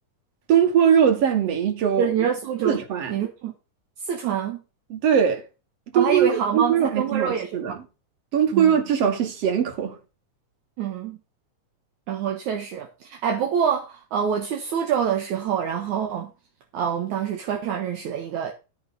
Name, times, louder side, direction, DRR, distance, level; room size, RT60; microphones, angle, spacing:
voice 1, 0.5-2.1 2.6-3.1 4.9-5.4 5.9-7.8 8.3-10.0, right 8 dB, 55° right, 3.1 m, -21 dB
voice 2, 2.0-2.8 3.1-3.5 4.0-4.6 5.9-7.8 8.5-8.7 10.8-11.2 12.1-16.3 16.7-18.5, right 8 dB, 70° right, 2.6 m, -26 dB
13.5 x 5.5 x 5.5 m
omnidirectional pair, 3.6 m